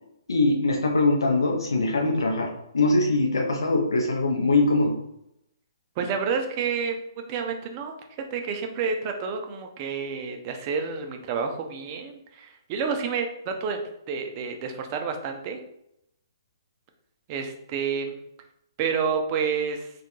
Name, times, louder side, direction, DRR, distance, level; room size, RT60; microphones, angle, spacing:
voice 1, 0.3-5.0, left 2 dB, 75° left, 0 dB, 0.5 m, -22 dB
voice 2, 6.0-8.0 8.3-13.8 14.1-15.6 17.3-18.2 18.8-19.9, right 6 dB, 35° right, 5 dB, 0.4 m, -29 dB
2.2 x 2.1 x 2.9 m, 0.79 s
figure-of-eight pair, 130°, 2 cm